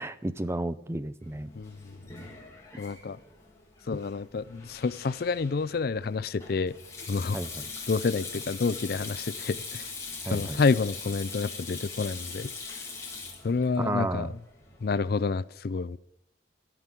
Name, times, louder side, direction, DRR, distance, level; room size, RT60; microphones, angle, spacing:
voice 1, 0.0-1.5 7.3-7.7 10.3-10.6 13.8-14.3, right 1 dB, 15° right, 0.4 m, -32 dB
Sink (filling or washing), 1.2-14.9, left 4 dB, 15° left, 2.1 m, -42 dB
voice 2, 1.5-2.0 2.8-3.2 3.9-6.8 7.1-7.4 7.9-9.9 10.3-12.5 13.4-14.4 14.8-16.0, left 4 dB, 55° left, 0.4 m, -29 dB
13.0 x 6.0 x 9.2 m
head